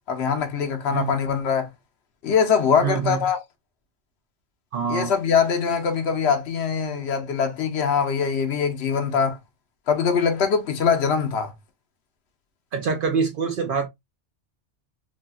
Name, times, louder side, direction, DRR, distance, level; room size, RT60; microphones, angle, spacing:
voice 1, 0.1-1.7 2.2-3.4 4.9-9.4 9.9-11.5, left 6 dB, 65° left, 0.9 m, -22 dB
voice 2, 2.8-3.2 4.7-5.1 12.7-13.9, right 5 dB, 60° right, 0.6 m, -25 dB
3.3 x 2.3 x 2.2 m
omnidirectional pair, 1.2 m